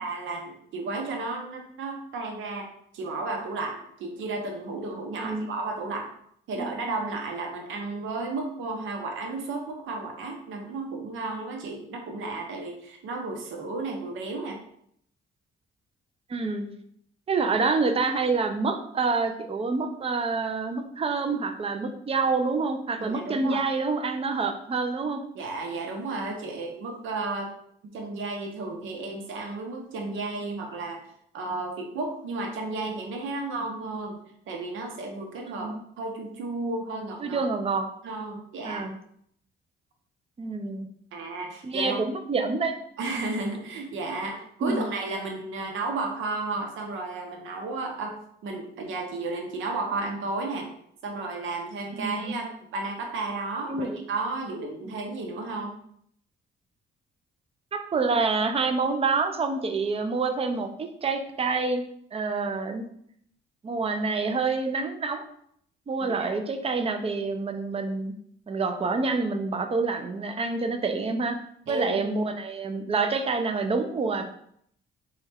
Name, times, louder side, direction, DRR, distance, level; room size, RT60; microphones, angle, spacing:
voice 1, 0.0-6.1 6.5-14.6 23.0-23.6 25.3-27.5 27.9-31.0 31.3-34.2 34.5-37.5 38.0-38.8 41.1-42.0 43.0-48.2 48.4-50.7 51.0-52.5 52.7-55.7 66.0-66.3 71.7-72.0, right 3 dB, 80° right, 2 dB, 0.8 m, -33 dB
voice 2, 16.3-16.7 17.3-25.2 35.5-35.8 37.2-37.9 38.6-39.0 40.4-40.9 41.6-42.7 44.6-44.9 51.9-52.4 53.7-54.0 57.7-61.8 62.1-62.8 63.6-65.2 65.9-68.1 68.5-71.4 71.7-74.2, right 4 dB, 30° right, 6 dB, 0.5 m, -27 dB
4.0 x 2.4 x 3.4 m, 0.69 s
cardioid pair, 90°, 20 cm